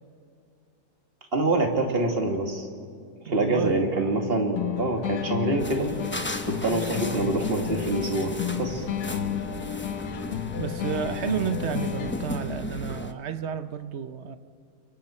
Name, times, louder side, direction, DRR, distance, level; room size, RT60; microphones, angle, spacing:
voice 1, 1.3-2.7 3.3-5.9 6.4-8.8, right 2 dB, 35° right, 2.2 m, -26 dB
voice 2, 3.2-4.4 7.1-7.3 10.6-14.4, right 8 dB, 50° right, 0.9 m, -32 dB
sound 1, 4.6-12.5, left 10 dB, 70° left, 1.3 m, -32 dB
sound 2, 5.6-13.1, left 1 dB, 15° left, 0.4 m, -36 dB
29.0 x 23.5 x 4.4 m
omnidirectional pair, 1.8 m